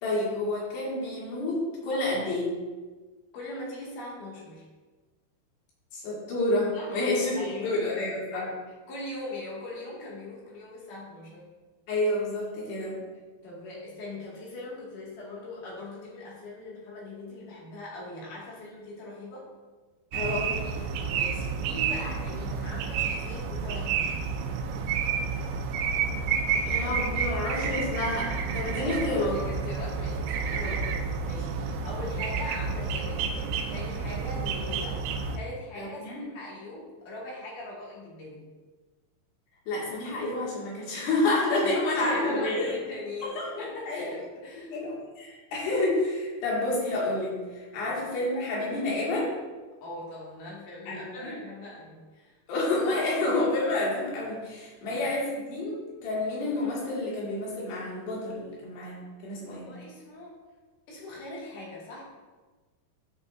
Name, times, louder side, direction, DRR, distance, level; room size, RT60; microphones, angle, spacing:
voice 1, 0.0-2.5 5.9-7.4 7.6-8.5 11.9-13.0 20.1-20.5 26.6-29.4 30.5-30.8 35.8-36.2 39.7-42.7 43.2-43.5 43.9-44.1 44.7-49.3 50.9-51.3 52.5-59.7, left 2 dB, 80° left, -5 dB, 4.2 m, -29 dB
voice 2, 3.3-4.6 6.7-6.9 7.4-7.8 8.9-11.5 13.4-19.5 21.1-24.2 29.1-35.0 35.3-38.5 41.0-41.1 41.6-44.7 47.7-47.9 49.8-52.3 54.9-55.0 59.5-60.4 60.9-62.0, left 2 dB, 55° left, -5 dB, 3.3 m, -41 dB
sound 1, 20.1-35.4, right 5 dB, 80° right, 2.6 m, -30 dB
13.5 x 6.0 x 2.6 m, 1.3 s
omnidirectional pair, 4.7 m